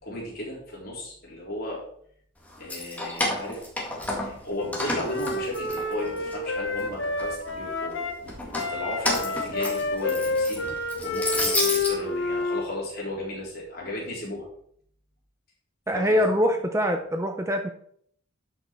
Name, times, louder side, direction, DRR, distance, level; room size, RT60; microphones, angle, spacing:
voice 1, 0.0-1.8 2.6-3.6 4.1-8.1 8.4-10.6 11.0-14.4 15.9-16.2, left 1 dB, 45° left, -3 dB, 3.5 m, -35 dB
Keys jangling, 2.5-4.4 4.7-6.3 6.8-7.5 8.3-11.9, left 1 dB, 5° left, 1.9 m, -30 dB
sound 1, 3.9-12.5, equal, 40° right, 2.2 m, -51 dB
Wind instrument woodwind instrument, 4.6-8.2 8.5-12.7, left 3 dB, 65° left, 1.2 m, -29 dB
voice 2, 15.9-17.7, equal, 15° right, 5 dB, 0.6 m, -24 dB
11.0 x 5.6 x 4.4 m, 0.65 s
head